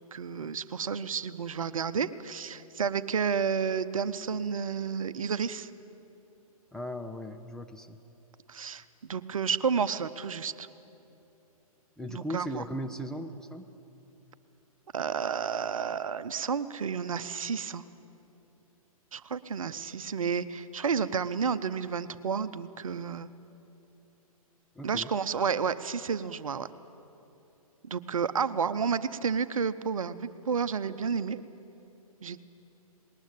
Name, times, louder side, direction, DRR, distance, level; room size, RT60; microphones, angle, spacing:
voice 1, 0.0-5.7 8.5-10.7 12.1-12.6 14.9-17.8 19.1-23.3 24.8-26.7 27.8-31.4 32.2-32.4, right 6 dB, 65° right, 14 dB, 0.8 m, -31 dB
voice 2, 6.7-8.0 12.0-13.7 24.8-25.1, equal, 5° left, 4 dB, 0.4 m, -38 dB
19.5 x 19.5 x 8.6 m, 2.9 s
figure-of-eight pair, 120°, 19 cm